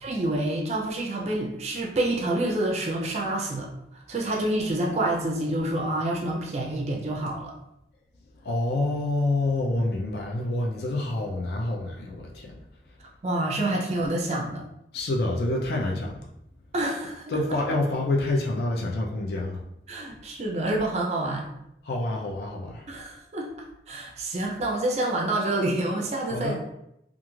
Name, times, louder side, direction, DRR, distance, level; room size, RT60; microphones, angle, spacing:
voice 1, 0.0-7.5 13.2-14.6 16.7-17.6 19.9-21.5 22.9-23.5 23.9-26.6, right 1 dB, 35° right, 0 dB, 0.4 m, -28 dB
voice 2, 8.4-12.5 14.9-16.2 17.3-19.6 21.9-22.8 26.3-26.6, left 2 dB, 60° left, -2 dB, 0.4 m, -27 dB
2.4 x 2.3 x 3.0 m, 0.80 s
head